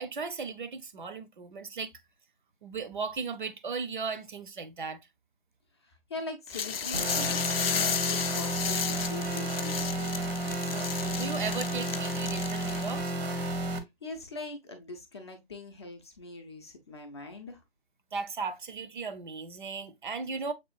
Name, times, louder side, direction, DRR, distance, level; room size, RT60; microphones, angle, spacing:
voice 1, 0.0-1.9 2.6-5.0 10.5-13.1 18.1-20.5, right 5 dB, 55° right, 0.6 m, -36 dB
voice 2, 5.8-10.1 13.8-17.6, left 3 dB, 25° left, 0.6 m, -42 dB
sound 1, 6.5-13.0, left 7 dB, 70° left, 0.5 m, -33 dB
sound 2, 6.9-13.8, right 1 dB, 80° right, 1.0 m, -32 dB
6.6 x 2.3 x 2.3 m
figure-of-eight pair, 150°, 30 cm